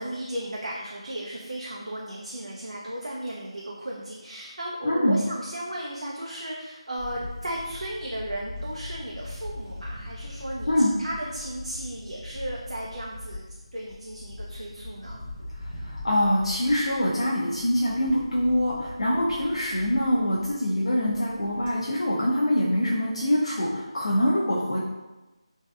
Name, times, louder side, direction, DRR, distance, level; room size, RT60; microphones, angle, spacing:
voice 1, 0.0-10.7 11.0-13.4 13.7-15.2, right 1 dB, 85° right, -4 dB, 0.5 m, -35 dB
voice 2, 4.8-5.2 10.7-10.9 15.6-24.8, equal, 70° left, -5 dB, 0.5 m, -24 dB
Camera, 7.0-21.7, left 2 dB, 20° left, 0.8 m, -41 dB
3.2 x 2.6 x 2.3 m, 1.1 s
figure-of-eight pair, 170°, 3 cm